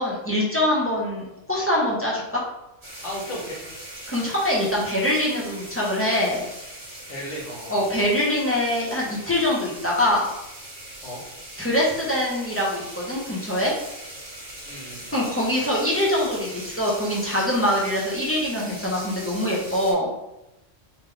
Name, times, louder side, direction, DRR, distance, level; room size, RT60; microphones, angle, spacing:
voice 1, 0.0-2.4 4.1-6.4 7.7-10.3 11.6-13.7 15.1-20.1, left 1 dB, 10° left, -5 dB, 0.9 m, -24 dB
sound 1, 2.8-19.9, right 1 dB, 40° right, 1.8 m, -40 dB
voice 2, 3.0-3.6 7.1-7.9 11.0-11.2 14.6-15.2, equal, 70° left, -4 dB, 1.7 m, -35 dB
4.1 x 3.4 x 3.4 m, 0.90 s
omnidirectional pair, 1.3 m